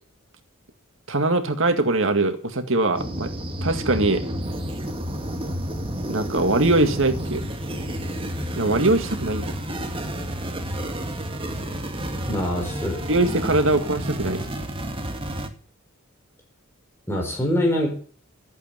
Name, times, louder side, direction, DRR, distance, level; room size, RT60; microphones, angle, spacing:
voice 1, 1.1-3.3 3.6-4.2 6.1-7.4 8.6-9.5 13.1-14.4, right 2 dB, 65° right, 8 dB, 2.0 m, -22 dB
sound 1, 2.9-15.5, equal, 25° right, 2.1 m, -30 dB
voice 2, 12.3-13.1 17.1-17.9, left 1 dB, 10° left, 0 dB, 4.9 m, -24 dB
15.0 x 8.3 x 9.1 m, 0.43 s
head